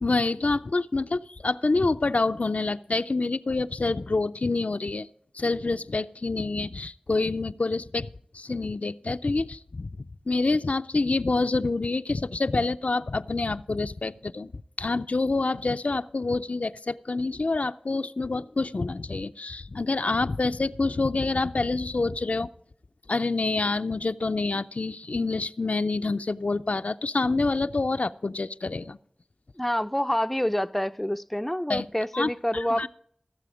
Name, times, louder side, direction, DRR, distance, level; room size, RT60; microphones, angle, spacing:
voice 1, 0.0-5.1 5.3-8.1 8.3-9.9 10.3-14.5 14.8-22.5 23.1-29.0 31.7-31.9 32.1-32.9, left 3 dB, 65° left, 0.4 m, -27 dB
voice 2, 29.6-32.9, equal, 5° left, 0.4 m, -27 dB
16.0 x 7.6 x 4.9 m
wide cardioid pair, 45°, 3 cm